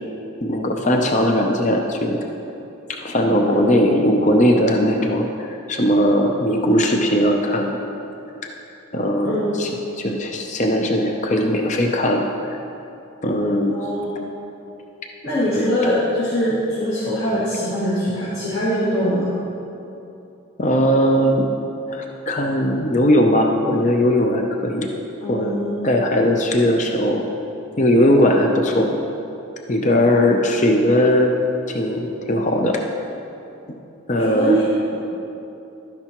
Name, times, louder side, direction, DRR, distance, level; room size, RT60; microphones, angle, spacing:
voice 1, 0.4-2.2 3.0-7.8 8.9-9.7 10.0-12.3 13.2-13.8 15.5-15.7 20.6-21.4 21.9-24.9 25.3-25.6 25.8-27.3 27.8-28.9 29.7-31.3 31.7-32.8 34.1-34.6, equal, 35° left, 2 dB, 0.6 m, -19 dB
voice 2, 9.2-9.6 13.7-14.2 15.2-19.3 25.2-25.9 34.2-34.6, equal, 55° left, -11 dB, 2.1 m, -22 dB
12.0 x 10.0 x 3.0 m, 2.9 s
head